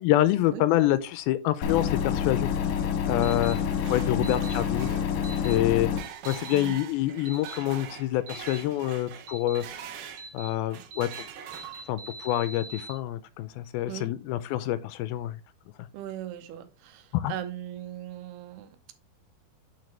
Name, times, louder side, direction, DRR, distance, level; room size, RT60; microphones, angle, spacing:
voice 1, 0.0-2.5 3.1-3.6 3.9-4.9 5.4-5.9 6.3-9.6 10.3-11.3 11.9-15.4 17.1-17.3, left 14 dB, 80° left, 2.3 m, -26 dB
sound 1, 1.6-6.0, left 8 dB, 65° left, 2.0 m, -28 dB
voice 2, 3.1-3.8 4.1-4.4 5.5-5.8 6.5-6.8 13.9-14.1 15.9-18.9, right 12 dB, 85° right, 2.9 m, -39 dB
sound 2, 3.2-3.5 4.2-4.5 5.2-5.6 6.2-6.6 7.3-7.6 8.3-8.6 9.3-9.6 10.2-10.5 10.9-11.2 11.5-12.9, right 3 dB, 45° right, 3.1 m, -42 dB
sound 3, 3.3-10.3 10.7-12.1, right 9 dB, 70° right, 2.6 m, -43 dB
9.1 x 4.7 x 3.2 m
omnidirectional pair, 4.6 m